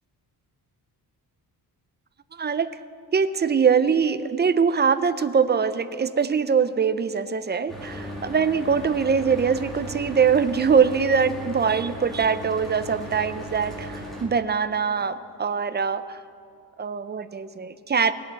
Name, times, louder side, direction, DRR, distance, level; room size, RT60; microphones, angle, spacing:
voice 1, 2.4-2.7 3.1-16.2 16.8-18.1, right 6 dB, 30° right, 13 dB, 0.5 m, -23 dB
Mechanical fan, 7.7-14.3, equal, ahead, 2.7 m, -37 dB
20.0 x 8.5 x 7.5 m, 2.4 s
wide cardioid pair, 150°, 37 cm